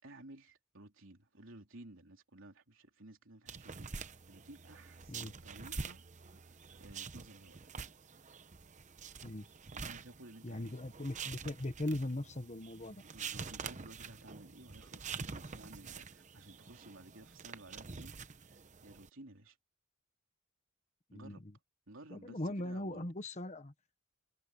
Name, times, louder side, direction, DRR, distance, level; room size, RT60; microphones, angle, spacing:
voice 1, 0.0-6.0 6.8-7.6 9.7-10.7 13.0-19.6 21.1-21.5 21.9-23.1, right 1 dB, 60° right, 3.8 m, -55 dB
sound 1, 3.5-19.1, right 5 dB, 35° right, 0.9 m, -47 dB
voice 2, 10.4-13.0 21.1-21.4 22.1-23.7, left 1 dB, 30° left, 1.2 m, -39 dB
head